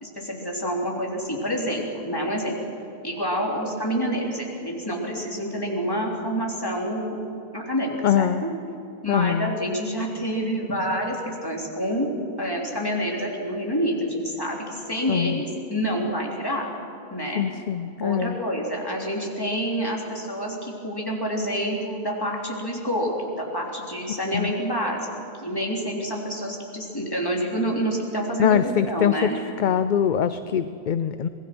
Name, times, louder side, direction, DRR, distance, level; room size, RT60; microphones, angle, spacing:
voice 1, 0.0-2.6 3.0-7.2 7.5-8.5 9.0-12.1 12.4-16.7 17.1-17.4 18.0-23.1 23.4-29.4, equal, 20° left, -2 dB, 3.6 m, -28 dB
voice 2, 8.0-8.4 9.1-9.6 15.1-15.4 17.3-18.4 24.1-24.5 28.4-29.3 29.6-31.3, left 9 dB, 55° left, 11 dB, 0.6 m, -23 dB
26.0 x 19.0 x 6.1 m, 2.9 s
omnidirectional pair, 1.1 m